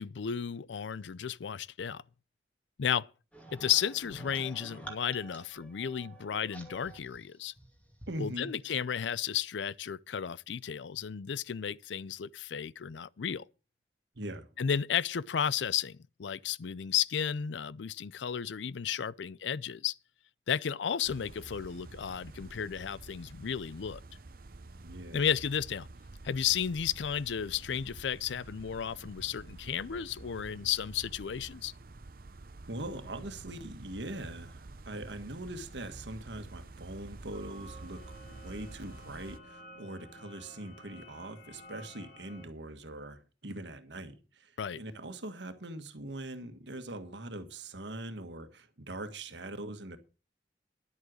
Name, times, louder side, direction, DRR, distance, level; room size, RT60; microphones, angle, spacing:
voice 1, 0.0-2.0 2.8-3.1 3.5-7.5 8.2-13.5 14.6-19.9 20.5-24.0 25.1-25.9 26.2-31.7 44.6-44.8, left 8 dB, 85° left, 0.5 m, -33 dB
sound 1, 3.3-8.1, right 2 dB, 10° left, 2.2 m, -50 dB
voice 2, 8.1-8.5 14.1-14.5 24.8-25.3 32.7-38.0 38.3-50.0, right 1 dB, 75° right, 1.5 m, -42 dB
sound 2, 21.0-39.4, right 2 dB, 50° right, 0.7 m, -49 dB
sound 3, 37.3-42.5, equal, 55° left, 1.8 m, -52 dB
11.0 x 7.8 x 6.3 m
head